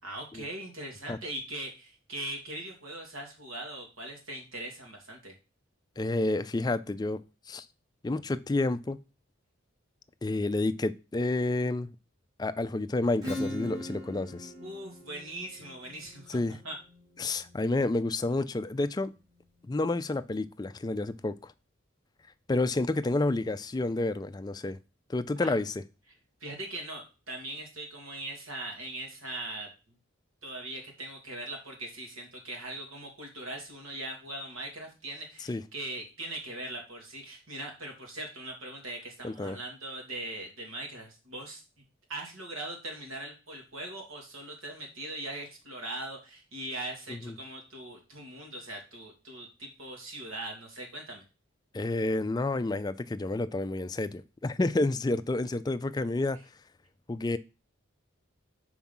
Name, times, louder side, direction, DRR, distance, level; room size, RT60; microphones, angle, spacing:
voice 1, 0.0-5.4 14.6-16.8 25.4-25.5 26.4-29.7 30.4-41.6 42.1-51.2, right 1 dB, 80° right, 2.5 m, -40 dB
voice 2, 6.0-7.7 8.0-9.0 10.2-11.9 12.4-14.5 16.3-16.6 17.2-19.1 19.6-21.5 22.5-24.8 25.1-25.7 35.5-35.6 39.2-39.6 47.1-47.3 51.7-56.4 57.1-57.4, left 2 dB, 20° left, 0.3 m, -30 dB
Acoustic guitar / Strum, 13.2-18.6, left 1 dB, 20° right, 2.6 m, -41 dB
5.9 x 4.7 x 5.4 m
head